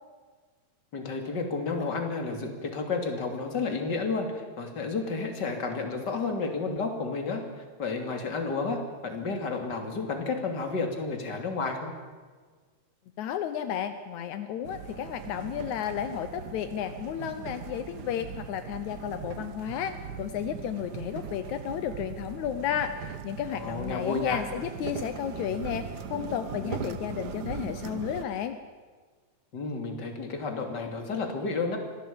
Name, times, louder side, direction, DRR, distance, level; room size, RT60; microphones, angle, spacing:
voice 1, 0.9-7.4 7.8-11.9 23.5-24.4 26.6-26.9 29.5-31.8, left 4 dB, 35° left, 4 dB, 3.4 m, -31 dB
voice 2, 13.2-28.6, left 9 dB, 80° left, 10 dB, 2.3 m, -33 dB
sound 1, 14.6-28.2, right 7 dB, 70° right, 0.9 m, -40 dB
25.5 x 17.0 x 8.7 m, 1.5 s
omnidirectional pair, 3.3 m